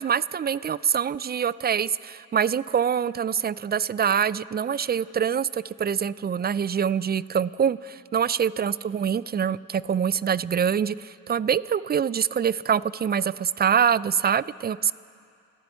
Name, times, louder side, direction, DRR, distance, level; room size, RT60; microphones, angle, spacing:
voice 1, 0.0-14.9, right 8 dB, 30° right, 19 dB, 0.4 m, -25 dB
29.5 x 9.9 x 4.5 m, 2.4 s
supercardioid pair, 50°, 34 cm